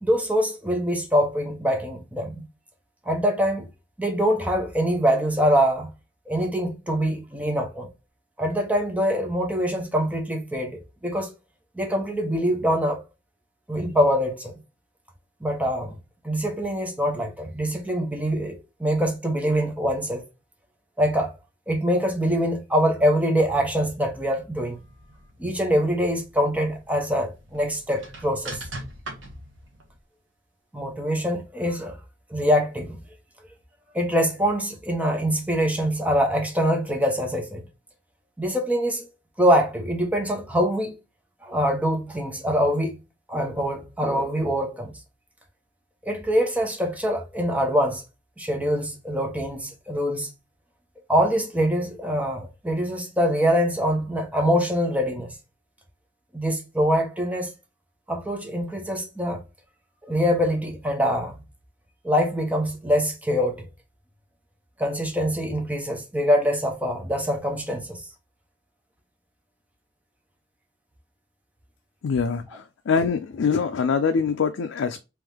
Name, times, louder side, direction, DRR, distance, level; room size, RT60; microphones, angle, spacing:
voice 1, 0.0-2.5 3.0-3.7 4.0-5.9 6.3-7.9 8.4-11.3 11.7-13.0 13.7-14.6 15.4-15.9 16.2-20.2 21.0-21.3 21.7-24.8 25.4-28.6 30.7-32.0 32.3-33.0 33.9-37.7 38.4-39.0 39.4-40.9 41.4-43.0 43.3-45.0 46.0-48.0 48.4-50.3 51.1-55.3 56.3-57.5 58.1-59.4 60.1-61.4 62.0-63.7 64.8-68.1, equal, 10° right, 0.9 m, -24 dB
sound 1, 24.6-30.0, right 2 dB, 80° right, 1.2 m, -42 dB
voice 2, 72.0-72.4 72.9-75.0, left 5 dB, 80° left, 0.4 m, -23 dB
3.6 x 3.0 x 3.3 m
head